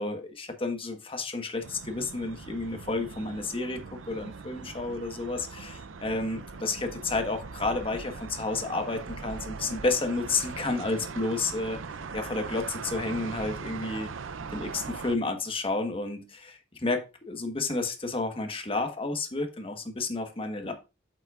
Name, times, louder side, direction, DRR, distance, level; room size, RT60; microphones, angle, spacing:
voice 1, 0.0-11.8 12.1-14.1 14.5-20.7, left 3 dB, 30° left, 5 dB, 1.3 m, -31 dB
sound 1, 1.6-15.2, right 4 dB, 85° right, 0.6 m, -40 dB
8.2 x 7.6 x 2.4 m, 0.28 s
head